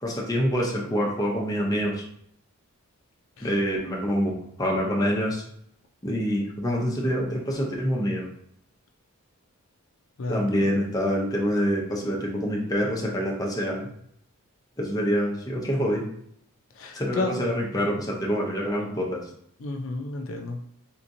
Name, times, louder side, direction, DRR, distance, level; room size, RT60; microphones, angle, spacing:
voice 1, 0.0-2.0 3.4-4.3 4.6-5.4 6.0-8.3 10.3-13.9 14.8-16.0 16.9-19.2, equal, 15° left, -2 dB, 0.6 m, -26 dB
voice 2, 10.2-10.7 16.7-17.4 19.6-20.6, left 2 dB, 65° left, 2 dB, 0.4 m, -31 dB
3.5 x 2.8 x 2.6 m, 0.69 s
head